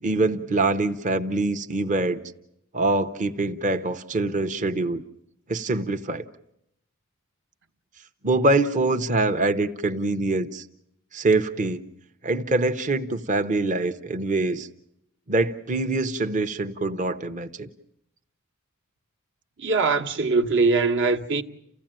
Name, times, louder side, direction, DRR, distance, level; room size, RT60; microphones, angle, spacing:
voice 1, 0.0-2.2 2.7-5.0 5.5-6.2 8.2-10.6 11.1-11.8 12.2-14.7 15.3-17.7, right 2 dB, 35° right, 0.8 m, -24 dB
voice 2, 19.6-21.4, right 4 dB, 60° right, 1.2 m, -22 dB
29.0 x 16.0 x 9.0 m
head